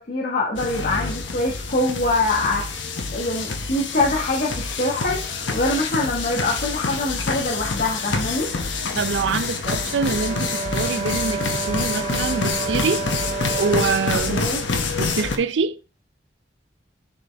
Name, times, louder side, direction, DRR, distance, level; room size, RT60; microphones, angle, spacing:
voice 1, 0.0-2.8 3.1-8.5 14.3-14.6, left 2 dB, 50° left, 1.5 m, -24 dB
sound 1, 0.6-15.4, left 4 dB, 85° left, 1.0 m, -27 dB
voice 2, 8.9-13.1 13.5-14.5 15.0-15.8, right 4 dB, 80° right, 0.5 m, -25 dB
Brass instrument, 9.6-14.0, right 4 dB, 35° right, 0.6 m, -30 dB
9.7 x 4.3 x 3.4 m
head